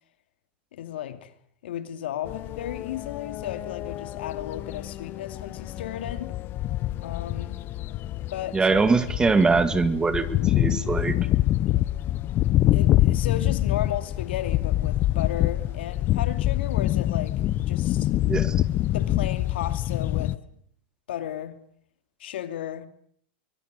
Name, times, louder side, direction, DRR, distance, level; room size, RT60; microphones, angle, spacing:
voice 1, 0.7-1.3 1.6-6.3 7.0-7.6 8.3-8.7 12.7-18.1 18.9-20.4 21.1-21.6 22.2-22.9, left 11 dB, 80° left, 2.7 m, -34 dB
sound 1, 2.3-20.4, left 14 dB, 40° left, 1.0 m, -26 dB
voice 2, 8.5-11.2 18.3-18.6, right 4 dB, 15° right, 2.2 m, -22 dB
24.5 x 22.0 x 7.9 m
hypercardioid pair, 125°, 6 cm